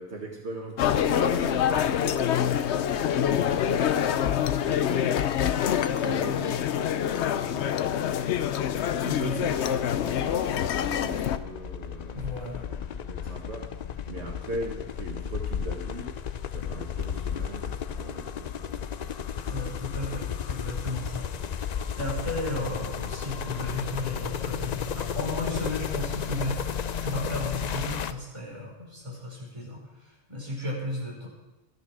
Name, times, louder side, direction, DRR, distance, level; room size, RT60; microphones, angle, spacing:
voice 1, 0.0-5.1 5.8-8.4 9.0-12.3 12.7-16.1 16.5-18.7, right 2 dB, 85° right, 0 dB, 2.0 m, -41 dB
sound 1, 0.8-11.4, left 9 dB, 85° left, 0.9 m, -26 dB
sound 2, 8.4-28.1, left 8 dB, 50° left, 0.5 m, -34 dB
voice 2, 9.0-9.7 12.1-12.7 19.4-21.3 22.0-26.7 27.0-29.8 30.0-31.3, left 1 dB, 25° right, -4 dB, 5.2 m, -34 dB
13.5 x 10.5 x 6.2 m, 1.1 s
omnidirectional pair, 1.1 m